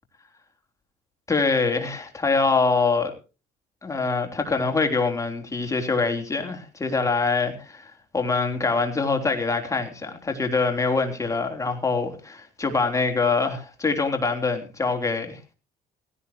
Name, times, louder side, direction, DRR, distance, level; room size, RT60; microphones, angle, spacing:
voice 1, 1.3-3.1 3.8-15.4, left 4 dB, 20° left, 4 dB, 3.4 m, -24 dB
18.0 x 16.5 x 3.0 m, 0.34 s
cardioid pair, 110°, 17 cm